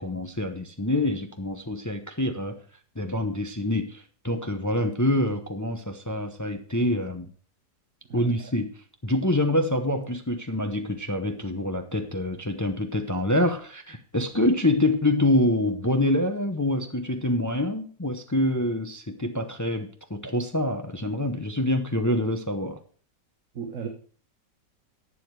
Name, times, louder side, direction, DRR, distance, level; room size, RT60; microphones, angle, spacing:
voice 1, 0.0-2.6 3.0-7.3 8.1-8.7 9.0-22.8, left 1 dB, 20° left, 6 dB, 0.5 m, -26 dB
voice 2, 8.1-8.5 23.5-23.9, right 6 dB, 50° right, 4 dB, 1.5 m, -36 dB
12.0 x 7.3 x 4.7 m, 0.43 s
omnidirectional pair, 1.8 m